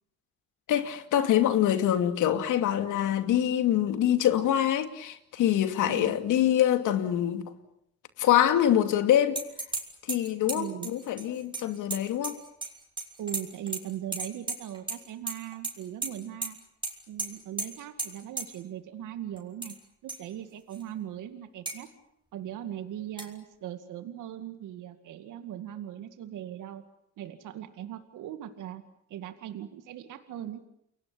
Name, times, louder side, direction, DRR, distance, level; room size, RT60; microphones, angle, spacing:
voice 1, 0.7-7.5 8.2-9.4 10.1-12.4, left 11 dB, 85° left, 2.7 m, -25 dB
voice 2, 5.8-6.2 10.5-10.9 13.2-16.6 17.1-19.7 20.0-21.9 22.3-26.8 27.2-28.8 29.1-30.6, right 11 dB, 85° right, 2.2 m, -39 dB
sound 1, 9.3-9.8 10.1-12.7 13.0-13.8 14.1-15.0 15.3-15.7 16.0-16.1 16.4-16.5 16.8-16.9 17.2-17.3 17.6-17.7 18.0-18.1 18.4-18.5 19.4-19.7 20.1-20.2 20.7-20.8 21.7-21.8 23.2-23.3, right 3 dB, 15° right, 6.5 m, -33 dB
29.5 x 23.0 x 8.6 m
cardioid pair, 90°, 30 cm